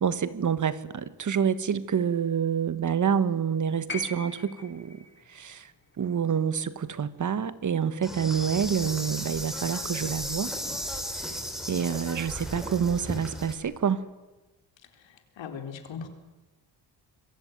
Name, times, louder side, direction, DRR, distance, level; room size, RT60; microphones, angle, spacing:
voice 1, 0.0-5.7 6.0-10.5 11.7-14.1, right 7 dB, 45° right, 14 dB, 1.4 m, -27 dB
sound 1, 3.9-8.1 9.3-9.4, left 3 dB, 25° left, 3.2 m, -43 dB
Insect, 8.0-13.5, equal, ahead, 4.0 m, -35 dB
voice 2, 15.0-16.1, left 6 dB, 90° left, 6 dB, 4.2 m, -39 dB
26.0 x 23.0 x 9.5 m, 1.1 s
wide cardioid pair, 160°, 43 cm